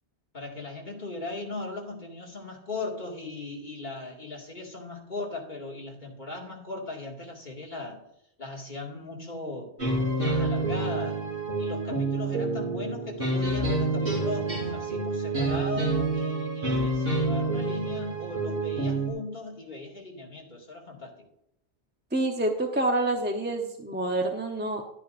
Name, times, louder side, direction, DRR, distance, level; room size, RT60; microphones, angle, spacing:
voice 1, 0.3-8.0 8.4-9.7 10.2-11.2 11.6-21.1, left 2 dB, 45° left, -1 dB, 2.3 m, -38 dB
sound 1, 9.8-19.1, right 2 dB, 55° right, 3.9 m, -28 dB
voice 2, 22.1-24.8, right 2 dB, 10° right, 2 dB, 0.8 m, -27 dB
11.5 x 10.5 x 2.6 m, 0.78 s
omnidirectional pair, 1.1 m